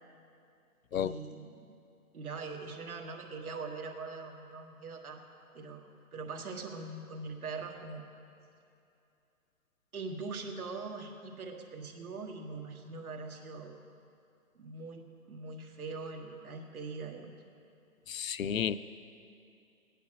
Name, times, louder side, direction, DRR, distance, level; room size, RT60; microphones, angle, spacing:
voice 1, 0.9-1.8 2.1-5.2 5.5-5.9 6.1-8.0 9.9-13.8 14.6-17.3, right 4 dB, 70° right, 2 dB, 2.0 m, -42 dB
voice 2, 18.1-18.8, left 8 dB, 60° left, 13 dB, 0.5 m, -31 dB
17.5 x 10.5 x 4.9 m, 2.6 s
hypercardioid pair, 165°, 46 cm